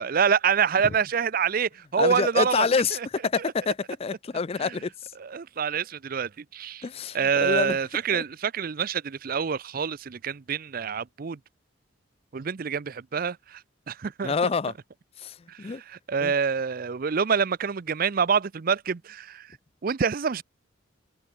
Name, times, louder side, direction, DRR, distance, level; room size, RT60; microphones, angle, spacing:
voice 1, 0.0-3.1 4.6-4.8 5.2-6.8 7.1-11.4 12.3-13.6 13.9-14.3 15.5-19.5 19.8-20.4, right 6 dB, 50° right, 0.5 m, -26 dB
voice 2, 2.0-5.1 6.8-7.8 8.1-8.2 14.2-14.7 15.2-15.8 16.2-16.3, left 5 dB, 30° left, 0.4 m, -27 dB
head